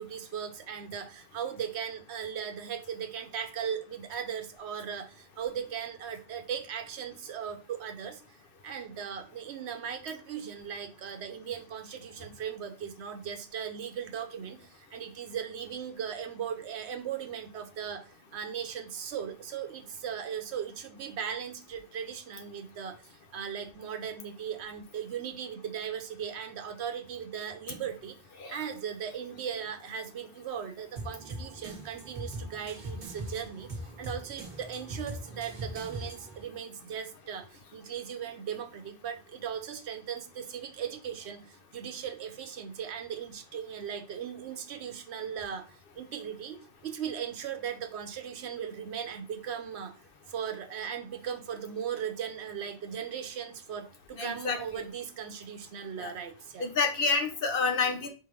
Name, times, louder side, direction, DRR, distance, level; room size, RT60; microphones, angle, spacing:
voice 1, 0.0-8.2 8.6-28.2 28.5-33.7 34.0-49.9 50.3-56.7, right 8 dB, 80° right, 7 dB, 1.0 m, -38 dB
sound 1, 31.0-36.4, right 1 dB, 45° right, 1.4 m, -41 dB
voice 2, 54.2-54.6 56.0-56.1 56.6-58.1, left 4 dB, 55° left, 5 dB, 1.0 m, -28 dB
4.6 x 3.6 x 3.1 m, 0.35 s
omnidirectional pair, 1.1 m